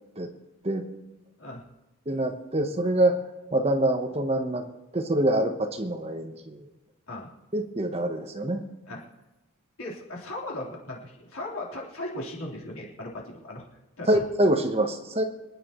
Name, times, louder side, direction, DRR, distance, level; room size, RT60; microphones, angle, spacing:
voice 1, 2.1-3.2 3.5-4.7 4.9-6.7 7.5-8.7 14.1-15.2, right 1 dB, 30° right, 6 dB, 0.9 m, -25 dB
voice 2, 9.8-13.7 14.0-14.2, left 1 dB, 75° left, -3 dB, 3.6 m, -37 dB
27.0 x 10.0 x 3.0 m, 1.1 s
head